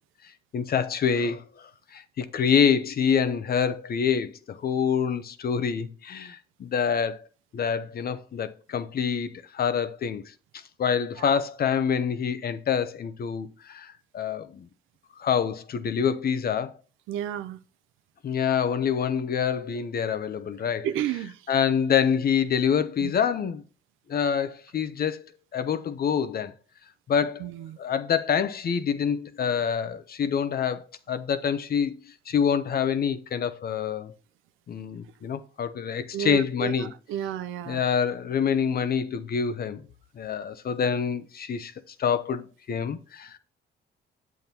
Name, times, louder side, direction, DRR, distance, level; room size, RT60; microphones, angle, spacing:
voice 1, 0.5-7.3 7.5-10.2 10.8-14.7 15.2-16.7 18.2-20.9 21.5-23.6 24.1-25.3 25.5-26.5 27.1-27.5 27.8-32.0 32.3-34.1 34.7-36.9 37.7-39.8 40.2-41.7 42.0-43.4, left 7 dB, 50° left, 0.7 m, -26 dB
voice 2, 17.1-17.6 20.8-21.5 23.0-23.1 27.4-27.8 36.1-37.8, right 11 dB, 90° right, 0.5 m, -32 dB
7.7 x 7.1 x 2.8 m
cardioid pair, 90°, 20 cm